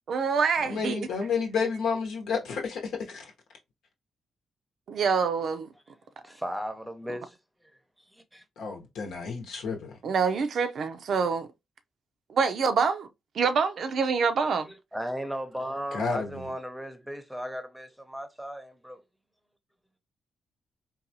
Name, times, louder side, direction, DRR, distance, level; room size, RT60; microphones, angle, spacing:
voice 1, 0.1-1.1 4.9-5.7 10.0-11.5 12.3-13.1 13.4-14.7, right 5 dB, 65° right, 0.4 m, -26 dB
voice 2, 0.6-3.3 8.6-10.0 15.9-16.5, left 5 dB, 85° left, 0.9 m, -31 dB
voice 3, 6.2-7.4 8.1-8.4 14.6-19.0, equal, 5° right, 0.7 m, -36 dB
3.9 x 2.3 x 2.7 m
cardioid pair, 75°, 0 cm